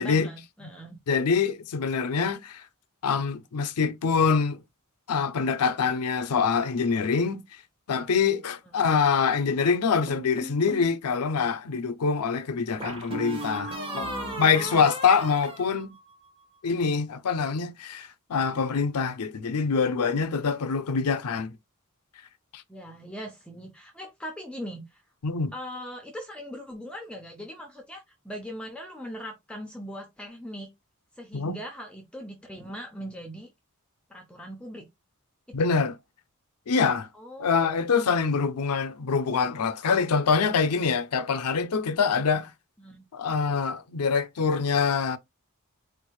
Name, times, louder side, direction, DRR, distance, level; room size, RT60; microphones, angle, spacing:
voice 1, 0.0-1.0 8.7-8.8 13.7-14.9 22.7-25.0 25.5-30.7 31.1-33.5 34.1-34.9 35.5-35.7 37.1-37.8 40.0-40.2 42.1-42.4 42.8-43.1, equal, 5° left, 0.6 m, -40 dB
voice 2, 1.1-2.6 3.0-4.6 5.1-7.4 7.9-14.1 14.4-16.0 16.6-21.5 22.5-22.6 25.2-25.5 31.3-31.6 35.5-35.9 36.7-37.1 37.4-42.5 43.1-45.2, left 5 dB, 85° left, 0.5 m, -25 dB
sound 1, 10.1-10.9 12.8-16.4, right 1 dB, 25° right, 1.4 m, -36 dB
4.5 x 2.4 x 3.0 m
head